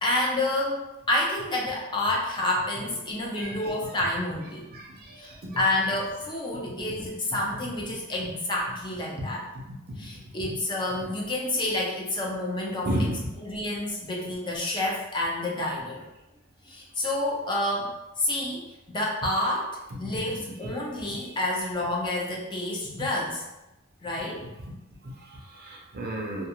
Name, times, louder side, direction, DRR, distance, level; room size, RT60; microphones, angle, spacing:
voice 1, 0.0-4.7 5.2-9.4 10.0-12.9 13.4-16.1 16.7-23.4 24.0-24.4, left 1 dB, 20° left, -3 dB, 0.4 m, -29 dB
voice 2, 3.4-4.0 4.7-5.6 9.2-9.3 9.7-9.8 12.8-13.3 20.0-20.7 21.1-21.2 23.0-23.1 25.0-26.5, equal, 45° right, -1 dB, 0.5 m, -34 dB
2.3 x 2.3 x 2.8 m, 0.93 s
head